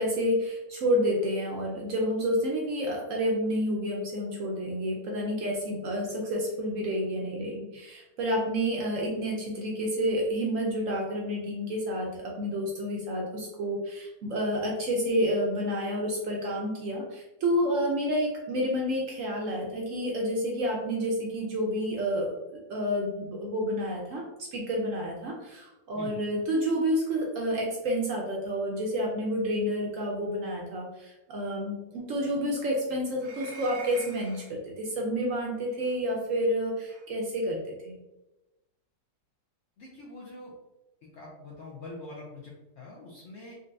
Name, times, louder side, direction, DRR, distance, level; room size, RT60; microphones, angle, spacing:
voice 1, 0.0-24.2 24.5-37.6 37.8-37.9, equal, 65° right, -1 dB, 0.8 m, -29 dB
sound 1, 33.2-34.5 35.8-36.0 36.9-37.0, right 4 dB, 90° right, 1.4 m, -45 dB
voice 2, 39.8-40.5 41.1-43.5, left 2 dB, 60° left, -3 dB, 0.7 m, -44 dB
3.8 x 2.2 x 2.5 m, 1.0 s
omnidirectional pair, 1.7 m